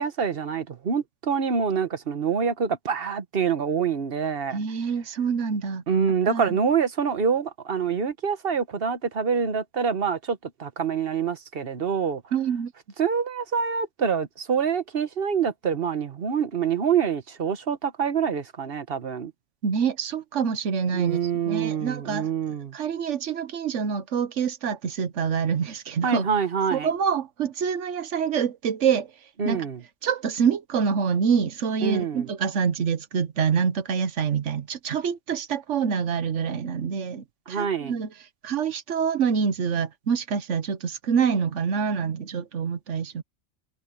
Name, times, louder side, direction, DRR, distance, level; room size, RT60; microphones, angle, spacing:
voice 1, 0.0-4.6 5.9-12.2 13.0-19.3 20.9-22.7 26.0-26.9 29.4-29.8 31.8-32.3 37.5-37.9, right 6 dB, 55° right, 1.3 m, -26 dB
voice 2, 4.5-5.8 6.3-6.6 12.3-12.7 19.6-21.2 21.5-22.3 22.7-26.3 26.7-29.1 29.4-29.7 30.0-38.1 38.4-43.2, right 6 dB, 90° right, 1.3 m, -26 dB
omnidirectional pair, 1.2 m